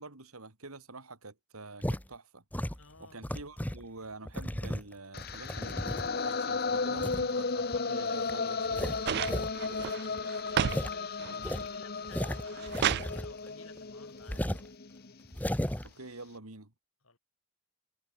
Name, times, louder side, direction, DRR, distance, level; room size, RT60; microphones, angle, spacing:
voice 1, 0.0-2.4 3.0-9.5 15.8-16.7, right 3 dB, 85° right, 3.1 m, -47 dB
sound 1, 1.8-2.0 2.5-3.8 4.3-6.3 7.0-7.3 7.7-7.8 8.2-8.3 8.7-9.5 9.8-9.9 10.2-10.3 10.6-10.9 11.4-13.5 13.8-13.9 14.3-14.7 15.2-15.9, equal, 5° left, 1.0 m, -35 dB
voice 2, 2.8-3.2 10.0-14.5 17.0-17.2, left 4 dB, 70° left, 4.8 m, -55 dB
sound 2, 5.1-15.2, left 4 dB, 45° left, 1.0 m, -35 dB
sound 3, 9.1-10.8 11.2-11.7 12.2-13.1 14.3-14.4, right 9 dB, 50° right, 0.3 m, -32 dB
head